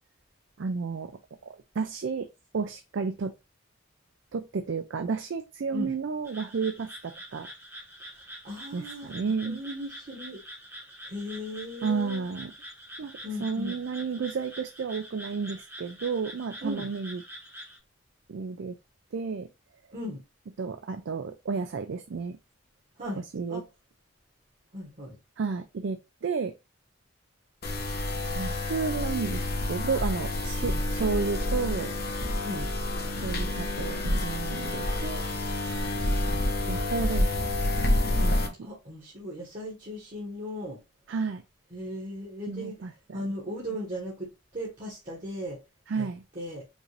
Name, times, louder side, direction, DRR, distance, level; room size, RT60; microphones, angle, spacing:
voice 1, 0.6-2.3 2.5-3.3 4.3-7.5 8.7-9.6 11.8-12.5 13.0-13.1 13.4-17.2 18.3-18.7 19.1-19.5 20.6-22.4 23.3-23.6 25.4-26.5 28.4-31.9 33.2-35.2 36.3-37.5 37.8-37.9 38.2-38.7 41.1-41.4 42.5-43.2 45.9-46.2, right 5 dB, 65° right, 0.4 m, -32 dB
sound 1, 6.2-17.8, equal, 10° right, 1.0 m, -45 dB
voice 2, 8.4-10.4 11.0-12.2 13.2-13.8 16.6-16.9 19.9-20.2 23.0-23.2 23.5-23.6 24.7-25.2 30.6-30.8 32.4-32.7 38.6-40.8 41.7-45.6 46.0-46.1 46.3-46.6, left 1 dB, 40° right, 1.3 m, -37 dB
sound 2, 27.6-38.5, left 1 dB, 50° left, 1.0 m, -28 dB
5.3 x 2.5 x 3.2 m
head